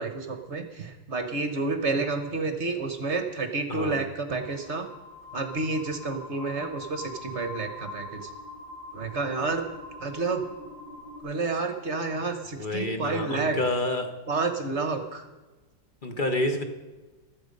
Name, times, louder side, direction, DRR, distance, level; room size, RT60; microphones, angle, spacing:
voice 1, 0.0-4.9 5.3-8.3 8.9-9.7 10.0-10.4 11.2-13.6 14.3-15.3, right 3 dB, 45° right, 7 dB, 1.1 m, -30 dB
sound 1, 2.8-11.2, left 2 dB, 75° left, 4.9 m, -43 dB
voice 2, 3.7-4.1 12.6-14.1 16.0-16.6, left 2 dB, 35° left, 6 dB, 0.9 m, -28 dB
15.0 x 12.5 x 5.3 m, 1.2 s
omnidirectional pair, 2.1 m